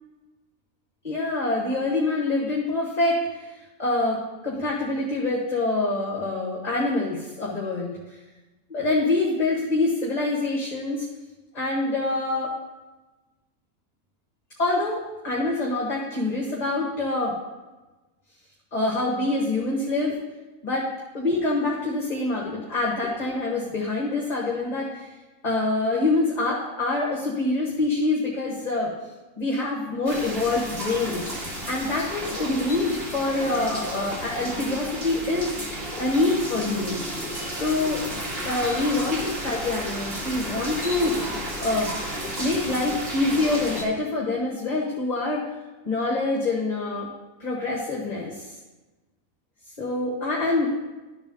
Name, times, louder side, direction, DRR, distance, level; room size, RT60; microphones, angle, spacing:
voice 1, 1.0-8.0 8.7-11.1 11.5-12.6 14.6-17.4 18.7-20.1 20.6-20.9 21.1-25.1 25.4-28.9 29.4-35.5 36.0-37.0 37.5-38.0 38.4-41.1 41.6-41.9 42.4-45.4 45.8-47.1 47.4-48.5 49.8-50.7, left 2 dB, 35° left, -3 dB, 1.3 m, -25 dB
sound 1, 30.1-43.8, equal, 45° right, 2.0 m, -32 dB
12.0 x 4.1 x 5.2 m, 1.2 s
omnidirectional pair, 1.4 m